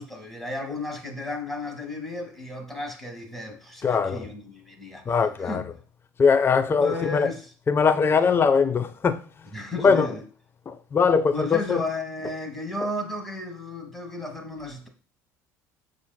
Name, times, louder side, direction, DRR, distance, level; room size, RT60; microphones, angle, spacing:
voice 1, 0.0-5.0 5.4-5.6 6.8-7.5 9.5-10.2 11.3-14.9, left 2 dB, 5° left, 1.3 m, -33 dB
voice 2, 3.8-4.3 5.1-5.6 6.2-7.3 7.7-9.2 9.8-10.2 10.7-11.8, left 5 dB, 25° left, 0.4 m, -21 dB
6.9 x 2.5 x 2.2 m
hypercardioid pair, 70°, 9 cm